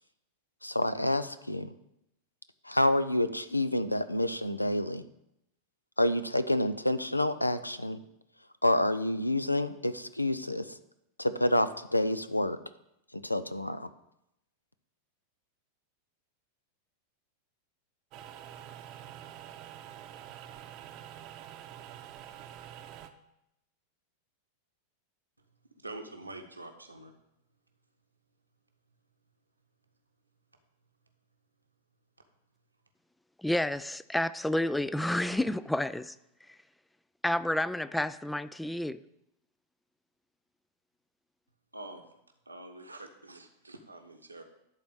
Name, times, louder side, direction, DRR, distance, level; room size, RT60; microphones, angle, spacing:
voice 1, 0.6-1.7 2.6-5.0 6.0-8.0 8.6-10.7 11.2-12.6 13.1-13.9, left 1 dB, 85° left, 13 dB, 0.5 m, -28 dB
sound 1, 18.1-23.1, right 10 dB, 40° right, 0.8 m, -47 dB
voice 2, 25.8-27.1 41.7-42.0 42.5-44.4, right 2 dB, 85° right, 4 dB, 1.1 m, -45 dB
voice 3, 33.4-36.2 37.2-39.0, left 1 dB, 5° left, 16 dB, 0.3 m, -30 dB
11.5 x 4.1 x 7.8 m, 0.83 s
figure-of-eight pair, 90°, 0 cm